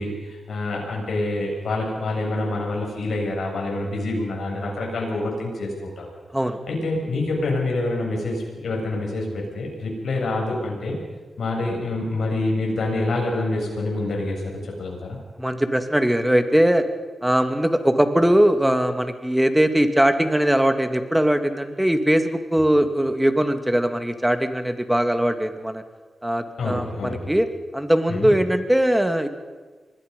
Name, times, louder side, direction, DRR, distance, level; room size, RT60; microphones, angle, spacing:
voice 1, 0.0-6.1 6.7-11.0 11.4-14.4 14.8-15.2 26.6-27.3 28.1-28.3, left 2 dB, 75° left, -1 dB, 7.6 m, -26 dB
voice 2, 15.4-16.8 17.2-25.8 26.2-27.5 27.7-29.3, right 1 dB, 10° right, 7 dB, 2.6 m, -20 dB
25.5 x 20.5 x 5.5 m, 1.3 s
cardioid pair, 45°, 0 cm